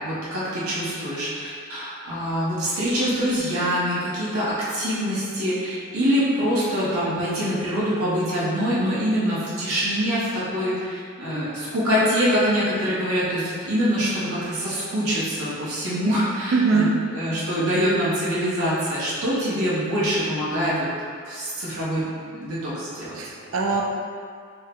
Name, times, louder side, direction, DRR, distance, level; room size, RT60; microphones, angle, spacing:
voice 1, 0.0-20.9 21.2-23.2, equal, 85° right, -9 dB, 1.0 m, -24 dB
voice 2, 16.5-17.0 23.1-23.8, right 4 dB, 60° right, -1 dB, 0.4 m, -21 dB
4.5 x 2.1 x 3.6 m, 2.2 s
head